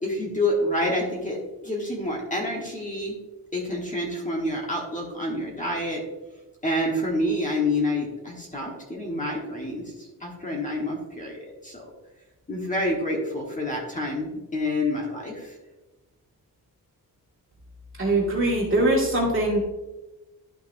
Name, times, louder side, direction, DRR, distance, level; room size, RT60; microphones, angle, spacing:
voice 1, 0.0-3.1 3.5-6.0 6.6-11.8 12.5-15.6, left 1 dB, 20° left, -2 dB, 1.3 m, -28 dB
voice 2, 18.0-19.6, right 1 dB, 35° right, -3 dB, 2.1 m, -22 dB
11.5 x 5.9 x 2.6 m, 1.1 s
wide cardioid pair, 175°, 37 cm